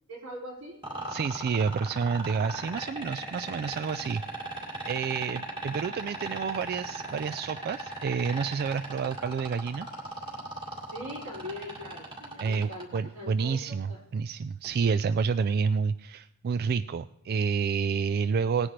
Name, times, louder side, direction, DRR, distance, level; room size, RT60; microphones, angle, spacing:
voice 1, 0.1-0.8 1.1-1.2 10.9-14.0, left 1 dB, 85° right, -3 dB, 5.1 m, -41 dB
sound 1, 0.8-13.0 14.6-14.7, right 2 dB, 25° right, 2.4 m, -37 dB
voice 2, 1.1-4.2 4.9-9.9 12.4-18.7, right 5 dB, 45° right, 12 dB, 0.3 m, -29 dB
19.0 x 9.8 x 3.3 m, 0.88 s
head